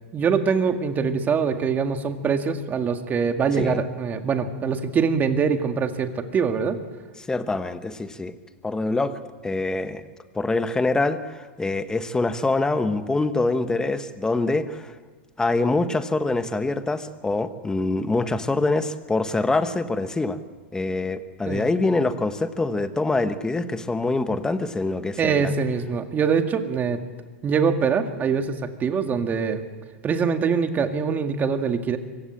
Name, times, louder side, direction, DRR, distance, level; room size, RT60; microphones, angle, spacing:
voice 1, 0.1-6.8 21.5-21.7 25.2-27.0 27.4-29.6 30.0-32.0, right 6 dB, 25° right, 6 dB, 2.0 m, -23 dB
voice 2, 7.3-8.3 8.6-10.0 10.3-14.9 15.4-20.4 20.7-25.5, left 2 dB, 10° left, 10 dB, 1.3 m, -25 dB
24.5 x 16.0 x 8.8 m, 1.4 s
hypercardioid pair, 120°, 7 cm